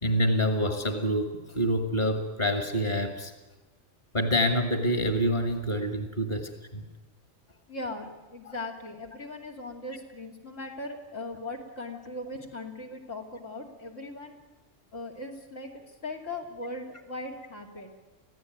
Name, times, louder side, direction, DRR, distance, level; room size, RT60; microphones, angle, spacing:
voice 1, 0.0-3.3 4.1-6.8 8.5-8.6, equal, 35° left, 6 dB, 2.0 m, -27 dB
voice 2, 7.7-14.4 14.9-17.9, left 2 dB, 70° left, 1 dB, 3.2 m, -39 dB
26.0 x 16.0 x 9.4 m, 1.1 s
omnidirectional pair, 1.3 m